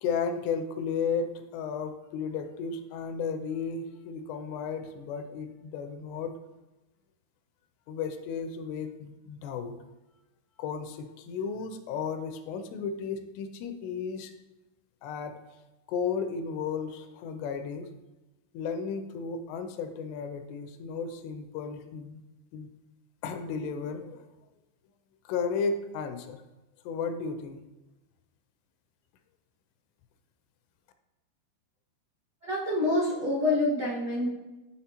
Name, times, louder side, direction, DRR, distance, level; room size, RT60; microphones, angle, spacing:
voice 1, 0.0-6.3 7.9-9.8 10.6-14.3 15.0-15.4 15.9-17.9 18.5-22.2 22.5-22.7 23.2-24.3 25.3-26.4 26.9-27.6, left 5 dB, 85° left, 8 dB, 2.6 m, -34 dB
voice 2, 32.4-34.3, left 2 dB, 65° right, -11 dB, 1.0 m, -27 dB
10.5 x 4.0 x 2.9 m, 1.1 s
omnidirectional pair, 4.8 m